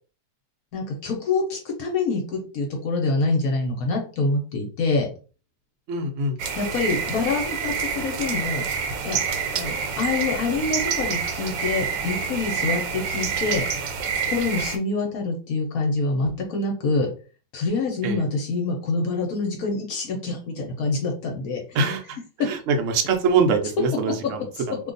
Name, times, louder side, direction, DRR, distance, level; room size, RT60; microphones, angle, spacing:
voice 1, 0.7-5.1 6.6-8.7 9.0-9.2 9.5-13.6 14.1-17.1 17.5-21.6 22.4-22.5, left 3 dB, 65° left, 1 dB, 1.1 m, -26 dB
voice 2, 5.9-6.4 18.0-18.3 21.7-24.8, right 4 dB, 70° right, 4 dB, 0.7 m, -24 dB
sound 1, 6.4-14.8, right 6 dB, 85° right, 1.3 m, -27 dB
2.7 x 2.3 x 3.8 m, 0.36 s
omnidirectional pair, 1.9 m